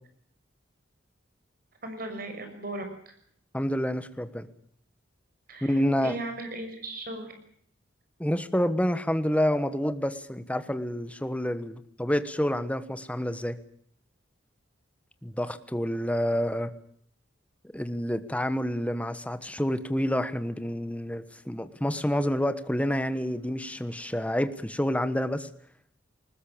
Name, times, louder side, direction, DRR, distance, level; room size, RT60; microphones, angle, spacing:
voice 1, 1.8-3.1 5.5-7.3, right 2 dB, 50° right, 6 dB, 6.3 m, -37 dB
voice 2, 3.5-4.5 5.6-6.2 8.2-13.6 15.2-16.7 17.7-25.5, equal, 5° left, 11 dB, 1.3 m, -28 dB
20.0 x 20.0 x 8.7 m, 0.65 s
head